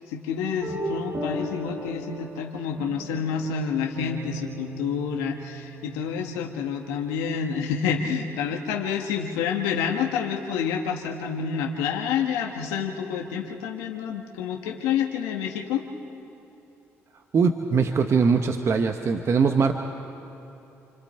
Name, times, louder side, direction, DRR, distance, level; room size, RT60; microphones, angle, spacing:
voice 1, 0.0-15.8, left 7 dB, 90° left, 1 dB, 1.4 m, -28 dB
sound 1, 0.6-7.1, right 1 dB, 70° right, 6.8 m, -37 dB
voice 2, 17.3-19.7, right 5 dB, 50° right, 5 dB, 1.2 m, -21 dB
28.5 x 25.0 x 4.4 m, 2.9 s
supercardioid pair, 60°, 6 cm